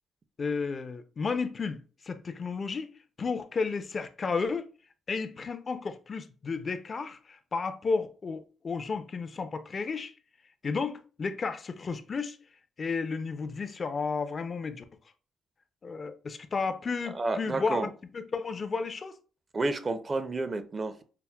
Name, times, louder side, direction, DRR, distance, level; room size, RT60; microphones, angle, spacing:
voice 1, 0.4-2.9 3.2-4.7 5.1-10.1 10.6-12.4 12.8-14.8 15.8-19.1, left 4 dB, 40° left, 0.4 m, -32 dB
voice 2, 17.1-17.9 19.5-21.0, right 2 dB, 30° right, 0.4 m, -30 dB
5.6 x 2.0 x 2.2 m
cardioid pair, 95°, 0 cm